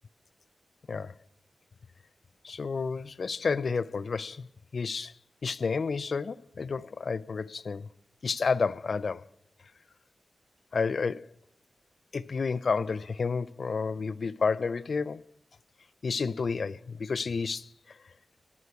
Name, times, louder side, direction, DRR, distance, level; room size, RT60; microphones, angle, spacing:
voice 1, 2.4-4.5 4.7-5.1 5.4-7.9 8.2-9.2 10.7-11.3 12.1-15.2 16.0-18.0, left 5 dB, 65° left, 0.3 m, -30 dB
9.7 x 9.3 x 4.6 m
wide cardioid pair, 75°, 0 cm